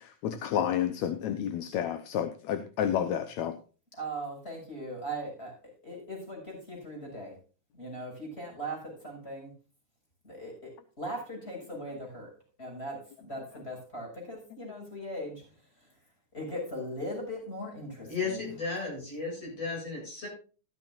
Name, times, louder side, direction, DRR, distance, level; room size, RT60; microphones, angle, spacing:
voice 1, 0.0-3.6, left 9 dB, 70° left, 10 dB, 2.0 m, -30 dB
voice 2, 3.9-5.5 5.8-7.3 7.7-9.5 10.2-12.3 12.6-15.5 16.3-18.4, right 1 dB, 15° left, -1 dB, 6.9 m, -39 dB
voice 3, 18.1-20.3, left 4 dB, 50° left, -1 dB, 9.1 m, -34 dB
14.5 x 13.5 x 2.5 m, 0.35 s
omnidirectional pair, 3.7 m